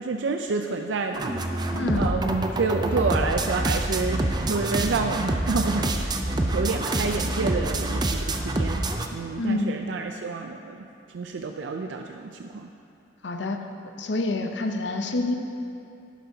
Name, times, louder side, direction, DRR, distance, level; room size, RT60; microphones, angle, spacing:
voice 1, 0.0-1.6 1.9-6.3 6.5-8.8 9.1-12.7, right 4 dB, 80° right, 4 dB, 0.4 m, -29 dB
sound 1, 1.1-9.1, right 2 dB, 25° right, 0.5 m, -26 dB
voice 2, 1.7-2.1 9.4-9.7 13.2-13.7 14.0-15.3, left 2 dB, 75° left, 5 dB, 0.7 m, -27 dB
sound 2, 1.7-2.0 2.6-3.2 3.6-4.5 5.3-6.1 6.5-8.5, equal, 15° left, 1.6 m, -46 dB
11.5 x 11.0 x 2.8 m, 2.7 s
head